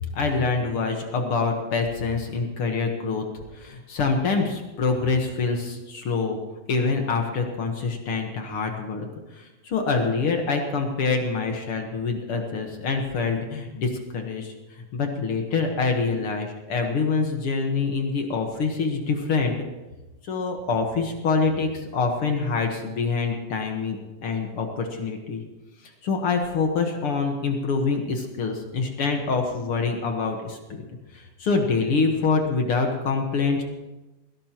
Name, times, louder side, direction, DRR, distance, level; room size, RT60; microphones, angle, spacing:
voice 1, 0.1-3.2 3.5-6.4 6.7-9.1 9.3-14.5 14.9-19.5 20.2-24.0 24.2-25.4 25.8-30.8 31.1-33.6, left 4 dB, 60° left, 3 dB, 1.5 m, -25 dB
21.0 x 17.0 x 3.0 m, 1.1 s
omnidirectional pair, 4.3 m